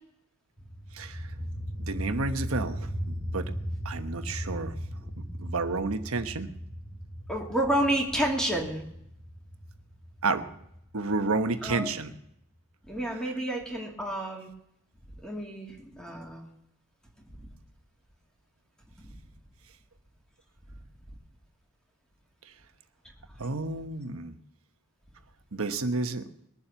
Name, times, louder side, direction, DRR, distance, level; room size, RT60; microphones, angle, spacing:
sound 1, 0.6-12.1, equal, 45° left, 4.6 m, -38 dB
voice 1, 0.9-1.3 1.8-2.9 3.3-3.5 3.8-4.7 5.2-6.5 10.2-10.4 10.9-12.1 23.4-24.4 25.5-26.2, right 3 dB, 80° right, 8 dB, 1.2 m, -30 dB
voice 2, 7.3-8.8 11.6-11.9 12.9-14.5 15.2-16.5, right 1 dB, 5° left, -1 dB, 2.4 m, -30 dB
21.5 x 7.2 x 6.9 m, 0.75 s
head